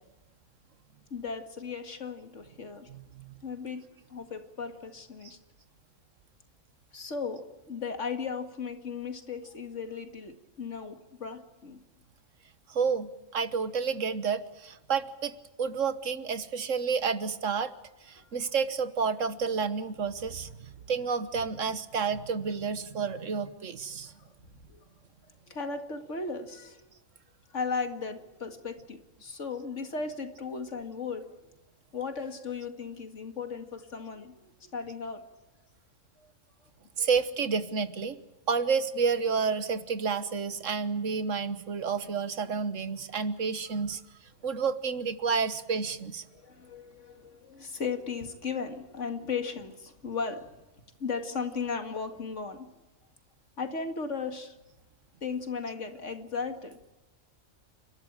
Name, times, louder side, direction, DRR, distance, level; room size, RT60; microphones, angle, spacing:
voice 1, 1.1-2.9 3.4-3.8 4.1-5.4 6.9-11.8 18.2-18.3 24.0-24.3 24.7-24.9 25.3-26.8 27.5-31.3 31.9-35.2 36.2-36.3 37.0-37.1 44.5-44.6 46.3-50.5 51.0-52.7 53.6-54.6 55.2-56.8, left 5 dB, 60° left, 6 dB, 2.3 m, -36 dB
voice 2, 2.9-3.2 12.7-17.7 18.1-20.5 20.9-24.1 37.0-38.2 38.5-44.0 44.4-46.2, right 5 dB, 70° right, 12 dB, 1.5 m, -30 dB
29.5 x 13.0 x 8.8 m, 1.1 s
omnidirectional pair, 1.4 m